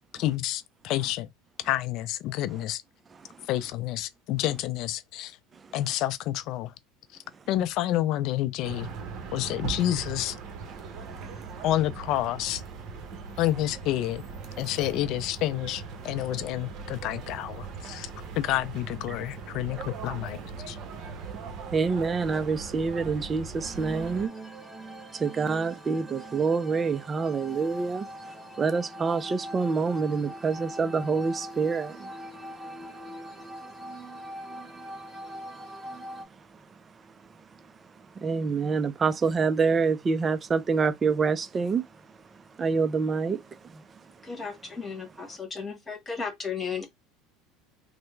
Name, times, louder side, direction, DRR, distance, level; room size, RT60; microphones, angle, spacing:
voice 1, 0.1-1.3 1.6-2.8 3.5-5.4 5.7-6.7 7.5-8.9 9.3-10.4 11.6-12.6 13.4-14.2 14.6-18.1 18.4-20.4 20.7-20.8, left 14 dB, 55° left, 0.4 m, -29 dB
sound 1, 8.6-24.3, right 5 dB, 50° right, 0.8 m, -40 dB
voice 2, 21.7-24.3 25.1-28.1 28.6-32.1 38.2-41.8 42.6-43.4 43.7-43.8, right 5 dB, 25° right, 0.3 m, -26 dB
sound 2, 23.6-36.2, right 1 dB, 5° right, 1.1 m, -42 dB
voice 3, 44.2-46.9, left 5 dB, 15° left, 1.2 m, -35 dB
3.3 x 2.0 x 3.1 m
supercardioid pair, 120°, 0 cm